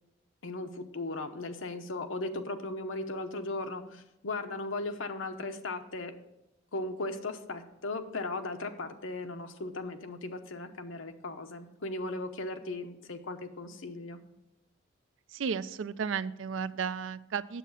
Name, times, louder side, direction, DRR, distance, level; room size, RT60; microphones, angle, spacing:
voice 1, 0.4-6.1 6.7-14.2, left 2 dB, 85° left, 7 dB, 0.9 m, -37 dB
voice 2, 15.3-17.6, right 6 dB, 75° right, 15 dB, 0.4 m, -33 dB
8.4 x 7.3 x 5.6 m, 0.89 s
head